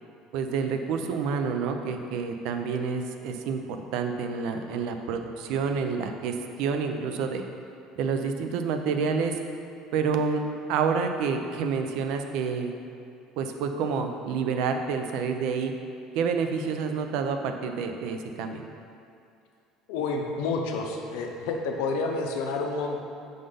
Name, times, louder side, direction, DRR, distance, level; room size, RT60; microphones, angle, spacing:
voice 1, 0.3-7.4 8.0-9.4 9.9-10.4 10.7-12.7 13.4-15.7 16.1-18.6, right 5 dB, 60° right, 6 dB, 0.4 m, -28 dB
voice 2, 19.9-23.0, left 3 dB, 75° left, 2 dB, 0.6 m, -29 dB
5.3 x 3.9 x 5.0 m, 2.5 s
cardioid pair, 170°, 0 cm